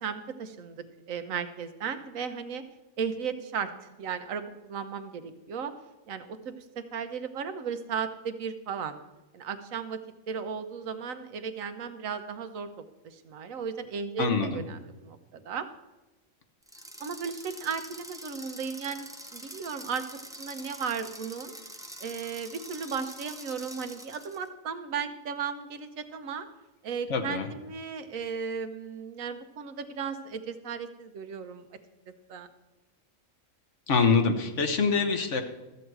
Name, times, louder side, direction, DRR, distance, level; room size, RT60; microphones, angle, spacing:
voice 1, 0.0-2.6 3.0-3.7 4.0-5.7 6.1-9.0 9.3-10.0 10.3-15.7 17.0-19.1 19.3-20.0 20.4-21.6 22.0-26.5 26.8-31.6 32.3-32.5, right 6 dB, 80° right, 9 dB, 1.2 m, -35 dB
voice 2, 14.2-14.6 27.1-27.5 33.9-35.4, left 4 dB, 65° left, 5 dB, 1.3 m, -25 dB
sound 1, 16.6-24.5, right 1 dB, 5° right, 0.5 m, -45 dB
13.5 x 7.7 x 4.6 m, 1.1 s
omnidirectional pair, 1.4 m